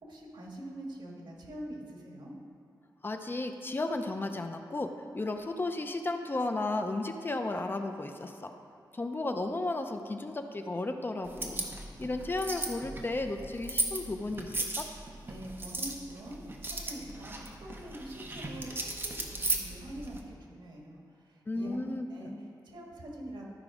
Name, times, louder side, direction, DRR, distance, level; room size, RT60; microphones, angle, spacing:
voice 1, 0.0-2.4 15.2-23.5, right 1 dB, 80° right, -1 dB, 1.7 m, -45 dB
voice 2, 3.0-8.5 8.9-11.6 12.0-14.9 21.5-22.3, left 2 dB, 25° left, 6 dB, 0.5 m, -34 dB
sound 1, 11.2-20.2, right 2 dB, 30° right, 0.8 m, -37 dB
12.5 x 5.0 x 4.9 m, 2.2 s
wide cardioid pair, 155°, 8 cm